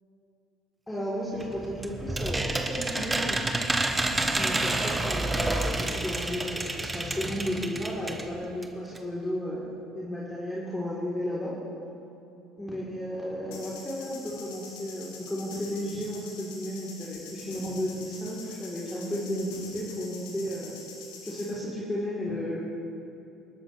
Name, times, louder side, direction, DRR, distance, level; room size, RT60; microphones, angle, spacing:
voice 1, 0.9-3.5 4.4-11.5 12.6-20.7 21.2-22.6, equal, 10° left, -7 dB, 3.4 m, -33 dB
sound 1, 1.4-8.3 8.6-8.7 8.9-9.0, right 2 dB, 15° right, 1.4 m, -29 dB
sound 2, 13.5-21.6, left 4 dB, 70° left, 2.3 m, -45 dB
26.5 x 13.0 x 3.3 m, 2.9 s
figure-of-eight pair, 60°, 0 cm